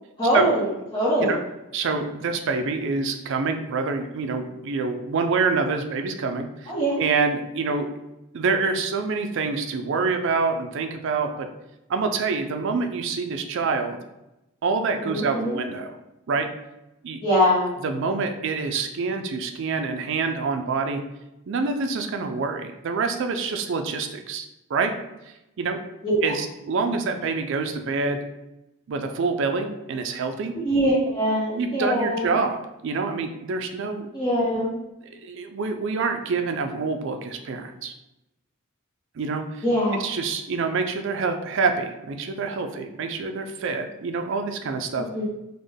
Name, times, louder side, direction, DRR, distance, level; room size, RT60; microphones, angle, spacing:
voice 1, 0.2-0.7 0.9-1.3 6.7-7.0 15.1-15.6 17.2-17.7 26.0-26.4 26.8-26.9 30.5-32.4 34.1-34.7 39.6-40.0 45.1-45.2, equal, 25° left, -9 dB, 0.8 m, -23 dB
voice 2, 1.7-6.7 7.0-7.9 8.3-11.5 11.9-14.0 14.6-16.0 16.3-16.5 17.0-17.2 17.8-21.0 21.5-24.4 24.7-24.9 25.6-25.8 26.2-28.2 28.9-30.5 31.5-32.6 32.8-34.1 35.1-37.9 39.2-39.6 40.0-45.1, right 4 dB, 55° right, 6 dB, 0.3 m, -26 dB
3.4 x 2.1 x 3.5 m, 0.93 s
head